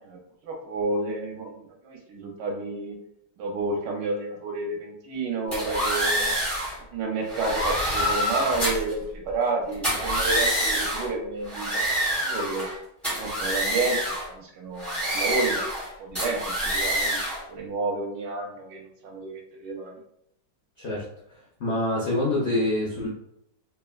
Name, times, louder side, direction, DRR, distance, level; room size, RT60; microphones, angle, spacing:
voice 1, 0.0-3.0 3.4-6.3 6.9-11.8 12.2-12.7 13.1-15.6 16.0-17.2 17.5-20.0, right 3 dB, 75° right, 0 dB, 1.2 m, -30 dB
sound 1, 5.5-6.7 7.3-8.9 9.7-11.1 11.4-12.7 13.0-14.3 14.8-15.9 16.1-17.4, right 1 dB, ahead, 0.5 m, -26 dB
voice 2, 21.6-23.1, left 1 dB, 75° left, -5 dB, 0.6 m, -25 dB
3.3 x 2.1 x 2.3 m, 0.75 s
omnidirectional pair, 2.0 m